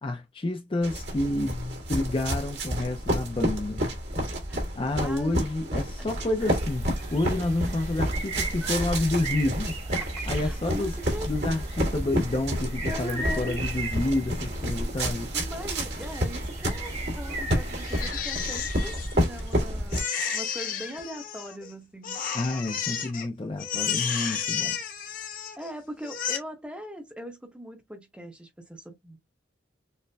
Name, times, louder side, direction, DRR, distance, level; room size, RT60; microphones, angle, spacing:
voice 1, 0.0-3.9 4.8-9.8 10.3-10.9 11.3-15.3 22.3-24.8, left 2 dB, 30° left, 0.4 m, -29 dB
sound 1, 0.8-20.0, equal, 70° right, 2.0 m, -30 dB
voice 2, 5.0-5.3 6.0-6.1 6.4-6.5 9.9-11.3 12.9-13.6 15.3-22.2 25.6-29.2, equal, 5° right, 0.9 m, -40 dB
sound 2, 6.4-18.1, right 2 dB, 35° right, 1.3 m, -37 dB
Crying sobbing, 17.8-19.5 19.9-21.7 22.0-23.3 23.6-25.7 26.0-26.4, left 8 dB, 50° left, 0.8 m, -32 dB
6.4 x 2.2 x 2.2 m
head